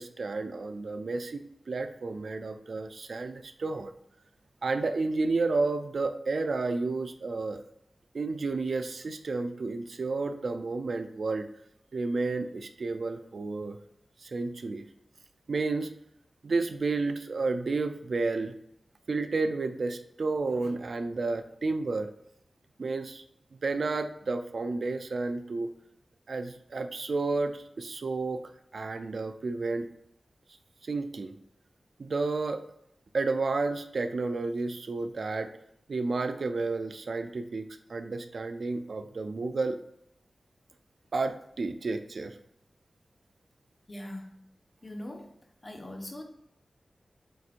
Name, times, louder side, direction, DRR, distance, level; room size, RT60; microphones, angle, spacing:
voice 1, 0.0-3.9 4.6-7.6 8.1-11.5 11.9-13.8 14.2-14.8 15.5-15.9 16.4-18.5 19.1-22.1 22.8-23.2 23.6-25.7 26.3-29.9 30.8-31.3 32.0-32.6 33.1-35.5 35.9-37.6 37.9-39.8 41.1-42.4, right 3 dB, 65° right, 8 dB, 0.3 m, -31 dB
voice 2, 43.9-44.4 44.8-45.4 45.6-46.2, left 1 dB, 30° left, 4 dB, 0.7 m, -41 dB
7.6 x 2.8 x 2.5 m, 0.74 s
wide cardioid pair, 115°, 0 cm